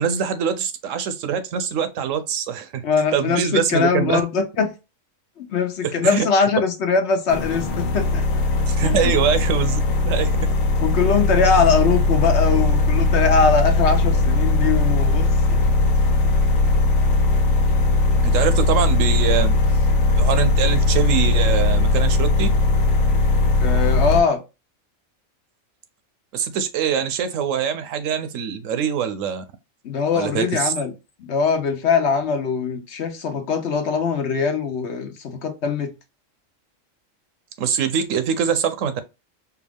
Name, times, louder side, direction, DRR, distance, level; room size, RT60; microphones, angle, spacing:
voice 1, 0.0-2.8 3.1-4.2 5.8-6.3 8.7-10.5 18.2-19.6 20.1-22.5 26.3-29.4 30.1-30.7 37.6-39.0, right 7 dB, 80° right, 1.0 m, -23 dB
voice 2, 2.8-4.7 5.4-8.2 8.8-9.0 10.8-15.6 23.6-24.4 29.8-30.9 31.2-35.9, left 5 dB, 60° left, 1.0 m, -21 dB
sound 1, 7.3-24.2, left 3 dB, 85° left, 1.1 m, -19 dB
4.5 x 2.4 x 3.4 m
omnidirectional pair, 1.3 m